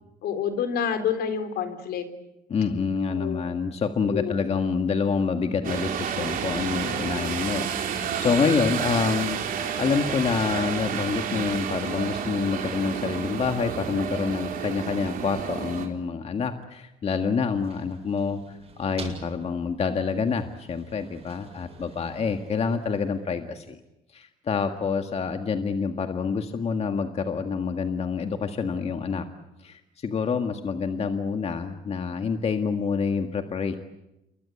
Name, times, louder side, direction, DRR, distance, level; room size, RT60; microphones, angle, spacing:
voice 1, 0.2-2.1 3.1-3.4 4.1-4.3 7.2-7.4 8.4-8.5, left 7 dB, 70° left, 9 dB, 3.9 m, -28 dB
voice 2, 2.5-9.4 9.8-23.8 24.1-29.3 29.6-33.7, left 5 dB, 35° left, 6 dB, 1.8 m, -27 dB
sound 1, 5.6-15.9, right 7 dB, 60° right, 4.4 m, -30 dB
sound 2, 17.3-23.3, right 4 dB, 35° right, 7.9 m, -46 dB
28.5 x 23.0 x 8.4 m, 0.93 s
cardioid pair, 110°, 17 cm